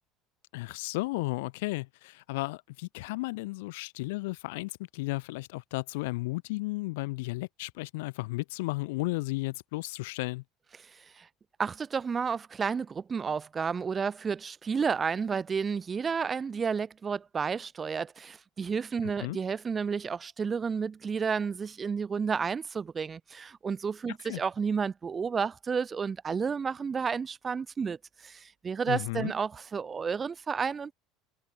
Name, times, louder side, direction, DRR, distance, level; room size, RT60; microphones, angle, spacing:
voice 1, 0.5-10.4 19.2-19.4 24.2-24.4 28.9-29.3, left 22 dB, 90° left, 3.2 m, -34 dB
voice 2, 11.6-28.0 28.2-30.9, right 6 dB, 20° right, 4.0 m, -31 dB
cardioid pair, 145°, 0 cm